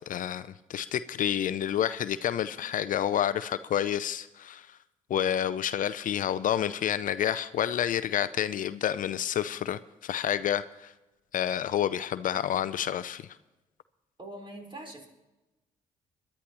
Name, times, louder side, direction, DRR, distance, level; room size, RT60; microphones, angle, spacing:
voice 1, 0.1-4.8 5.1-10.9 11.3-13.3, left 10 dB, 55° left, 15 dB, 0.5 m, -29 dB
voice 2, 14.2-15.1, right 1 dB, 30° right, 1 dB, 4.0 m, -43 dB
22.5 x 11.5 x 3.0 m, 1.1 s
hypercardioid pair, 55°, 16 cm